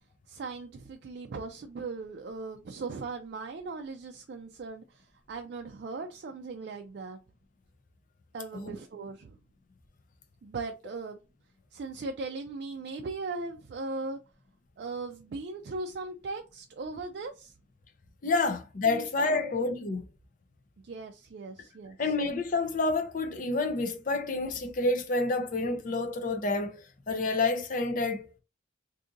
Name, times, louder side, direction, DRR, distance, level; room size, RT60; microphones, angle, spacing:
voice 1, 0.3-7.2 8.3-9.4 10.4-11.2 11.7-14.2 14.8-17.5 18.8-19.5 20.8-22.1, right 3 dB, 60° right, 0.3 m, -39 dB
voice 2, 18.2-20.1 22.0-28.4, left 3 dB, 45° left, 0.6 m, -29 dB
2.7 x 2.5 x 3.7 m
head